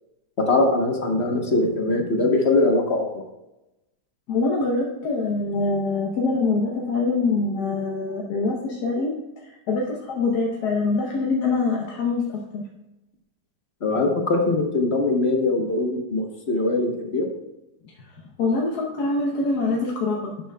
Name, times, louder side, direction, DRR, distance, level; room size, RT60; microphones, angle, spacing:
voice 1, 0.5-3.2 13.8-17.3, left 2 dB, 40° left, 1 dB, 1.2 m, -22 dB
voice 2, 4.3-9.1 9.7-12.6 18.4-20.3, left 3 dB, 70° left, -2 dB, 1.5 m, -24 dB
11.5 x 7.5 x 2.3 m, 0.96 s
omnidirectional pair, 1.8 m